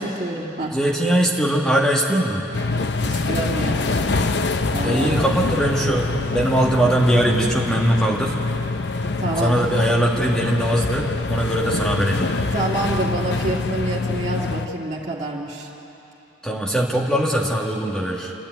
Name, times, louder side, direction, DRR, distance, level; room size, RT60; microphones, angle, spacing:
voice 1, 0.0-0.8 3.0-4.0 4.7-5.5 9.2-9.5 12.5-15.7, right 2 dB, 35° right, -5 dB, 2.6 m, -27 dB
voice 2, 0.7-2.4 4.8-8.3 9.4-12.3 16.4-18.3, right 1 dB, 5° left, -2 dB, 1.5 m, -21 dB
sound 1, 2.5-14.7, left 3 dB, 60° left, 0.7 m, -24 dB
28.5 x 10.5 x 9.2 m, 2.9 s
head